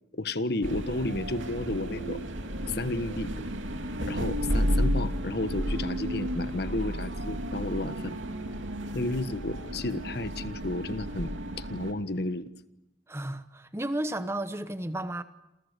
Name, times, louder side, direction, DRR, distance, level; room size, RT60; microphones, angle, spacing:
voice 1, 0.1-2.2 2.7-3.3 4.0-8.2 8.9-12.4, left 1 dB, 55° left, 1.3 m, -32 dB
sound 1, 0.6-11.9, equal, 80° right, 2.8 m, -32 dB
voice 2, 13.1-15.2, right 1 dB, 15° right, 1.1 m, -33 dB
28.5 x 28.0 x 6.7 m
head